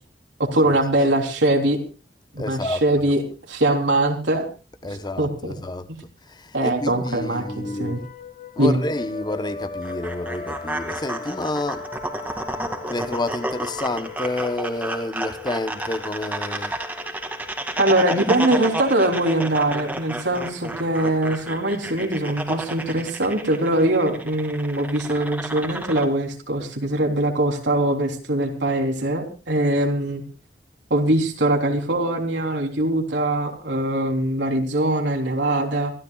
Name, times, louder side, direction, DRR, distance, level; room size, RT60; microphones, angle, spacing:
voice 1, 0.4-1.8 2.3-3.2 3.5-4.5 5.2-5.6 5.9-6.0 6.5-8.0 8.6-8.8 17.8-30.2 30.9-35.9, right 1 dB, 90° right, 3.5 m, -22 dB
voice 2, 2.4-2.8 4.8-5.9 6.3-8.1 8.6-11.9 12.9-16.7, left 2 dB, 25° left, 0.9 m, -29 dB
sound 1, 6.7-22.0, left 5 dB, 45° left, 2.0 m, -39 dB
sound 2, 9.8-26.0, right 1 dB, 10° right, 2.2 m, -32 dB
27.0 x 15.5 x 2.4 m
head